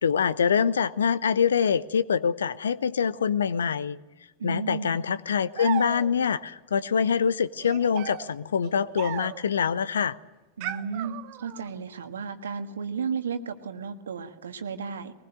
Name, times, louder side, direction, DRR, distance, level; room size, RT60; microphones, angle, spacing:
voice 1, 0.0-4.0 4.4-10.2, left 7 dB, 70° left, 0.8 m, -25 dB
voice 2, 4.4-5.0 10.6-15.1, right 6 dB, 65° right, 1.6 m, -34 dB
sound 1, 5.5-6.4 7.6-9.6 10.6-11.7, right 13 dB, 45° right, 1.2 m, -36 dB
22.0 x 20.0 x 9.0 m
figure-of-eight pair, 90°, 0 cm